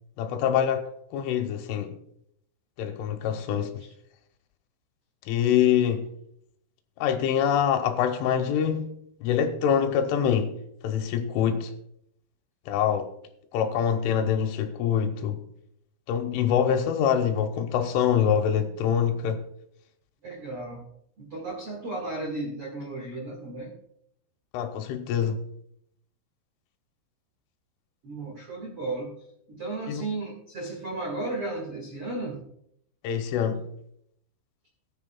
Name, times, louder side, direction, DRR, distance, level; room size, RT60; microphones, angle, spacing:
voice 1, 0.2-0.8 1.1-2.0 2.8-3.7 5.3-6.1 7.0-8.9 9.2-10.5 10.8-11.7 12.7-13.1 13.5-15.4 16.1-19.4 24.5-25.4 29.9-30.0 33.0-33.7, left 8 dB, 80° left, 3.2 m, -25 dB
voice 2, 20.2-20.8 21.2-23.7 28.0-29.1 29.5-32.4, right 2 dB, 85° right, 1.2 m, -34 dB
18.5 x 9.8 x 2.3 m
omnidirectional pair, 5.8 m